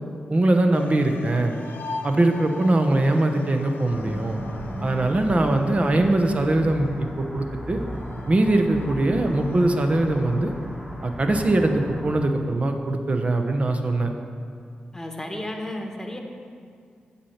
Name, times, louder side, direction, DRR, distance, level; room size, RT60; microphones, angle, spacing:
voice 1, 0.3-1.5 2.0-4.4 4.8-7.8 8.3-10.5 11.0-14.1, right 2 dB, 40° right, 5 dB, 0.8 m, -21 dB
sound 1, 0.7-11.1, left 4 dB, 85° left, 0.5 m, -42 dB
sound 2, 3.9-12.2, equal, 5° right, 1.5 m, -36 dB
voice 2, 14.9-16.2, left 1 dB, 15° left, 2 dB, 1.2 m, -33 dB
8.3 x 4.3 x 7.2 m, 2.2 s
cardioid pair, 55°, 3 cm